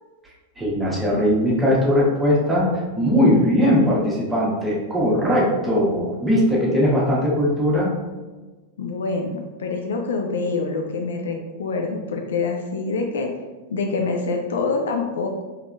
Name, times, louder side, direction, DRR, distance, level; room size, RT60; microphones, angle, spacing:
voice 1, 0.6-2.7 2.9-7.9, equal, 10° right, -5 dB, 1.0 m, -19 dB
voice 2, 8.8-13.3 13.7-15.4, left 3 dB, 65° left, 3 dB, 0.3 m, -26 dB
3.5 x 3.0 x 2.3 m, 1.3 s
figure-of-eight pair, 90°, 0 cm